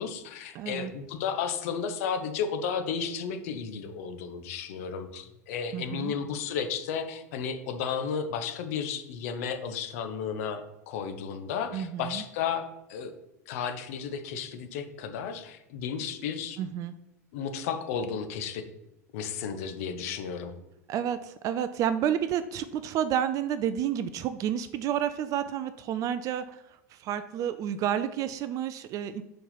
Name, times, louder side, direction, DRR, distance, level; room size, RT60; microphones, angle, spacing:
voice 1, 0.0-13.1 13.5-16.6 17.3-18.6 19.1-20.5, left 7 dB, 60° left, 8 dB, 0.8 m, -33 dB
voice 2, 0.5-0.9 5.7-6.1 11.7-12.2 16.6-17.0 20.9-29.2, right 9 dB, 40° right, 12 dB, 0.4 m, -30 dB
5.1 x 4.5 x 5.7 m, 0.91 s
figure-of-eight pair, 80°, 9 cm